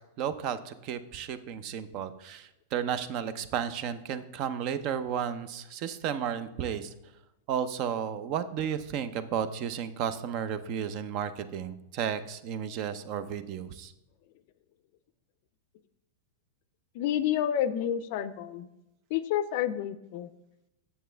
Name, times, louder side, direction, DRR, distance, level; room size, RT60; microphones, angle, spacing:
voice 1, 0.2-6.9 7.5-13.9, right 8 dB, 45° right, 13 dB, 0.6 m, -33 dB
voice 2, 16.9-18.7 19.1-20.3, left 10 dB, 55° left, 13 dB, 0.4 m, -29 dB
7.4 x 6.9 x 3.4 m, 0.91 s
hypercardioid pair, 125°, 0 cm